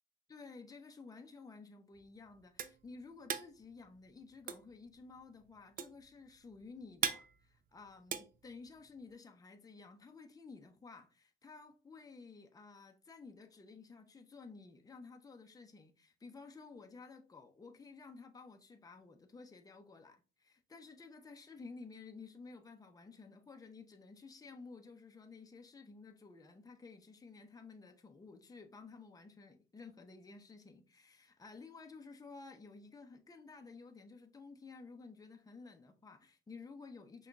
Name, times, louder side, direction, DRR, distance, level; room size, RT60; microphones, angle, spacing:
voice 1, 0.3-37.3, left 4 dB, 20° left, 0.6 m, -54 dB
sound 1, 1.9-9.1, right 8 dB, 45° right, 0.4 m, -41 dB
5.6 x 2.3 x 2.5 m
cardioid pair, 90°, 20 cm